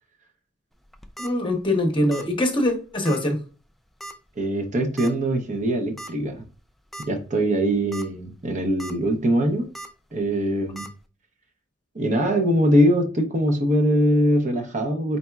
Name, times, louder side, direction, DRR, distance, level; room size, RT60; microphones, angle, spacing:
sound 1, 0.8-1.3 2.1-2.4 2.6-2.7 3.1-3.2 4.0-4.3 5.0-5.1 6.0-6.1 6.6-6.7 6.9-7.1 7.7-8.0 8.5-8.9 9.7-9.9 10.8-10.9, right 2 dB, ahead, 0.3 m, -37 dB
voice 1, 1.2-3.4, left 1 dB, 25° left, 3 dB, 0.9 m, -23 dB
voice 2, 4.4-6.4 7.1-9.7 10.1-10.9 11.9-15.2, equal, 35° right, 4 dB, 0.7 m, -22 dB
4.2 x 4.0 x 2.3 m, 0.36 s
head